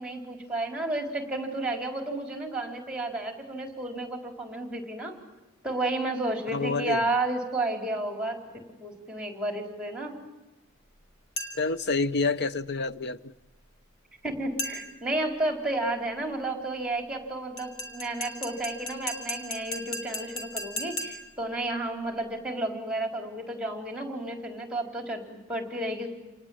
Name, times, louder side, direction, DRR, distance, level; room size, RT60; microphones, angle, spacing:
voice 1, 0.0-5.2 5.6-8.4 8.8-10.2 14.2-26.1, right 2 dB, 5° right, 4.5 m, -32 dB
voice 2, 6.5-7.0 11.6-13.3, left 3 dB, 55° left, 0.9 m, -28 dB
sound 1, 11.4-11.8 14.6-15.1 17.6-21.4, left 1 dB, 70° left, 3.8 m, -36 dB
28.5 x 20.0 x 9.0 m
head